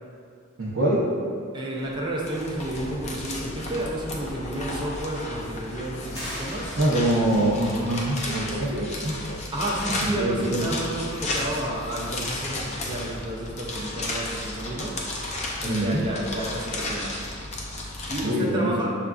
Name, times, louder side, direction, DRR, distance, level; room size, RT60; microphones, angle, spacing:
voice 1, 0.6-1.0 6.8-9.4 10.0-10.8 11.4-11.5 15.6-16.0 18.2-18.8, right 1 dB, 65° right, -9 dB, 0.6 m, -25 dB
voice 2, 1.5-6.8 9.5-15.0 15.6-17.2 18.1-18.9, right 1 dB, 20° right, -4 dB, 0.4 m, -31 dB
sound 1, 1.7-18.2, left 2 dB, 35° left, 0.5 m, -33 dB
sound 2, 6.1-7.5, equal, 20° left, 1.0 m, -38 dB
6.4 x 2.4 x 2.3 m, 2.2 s
head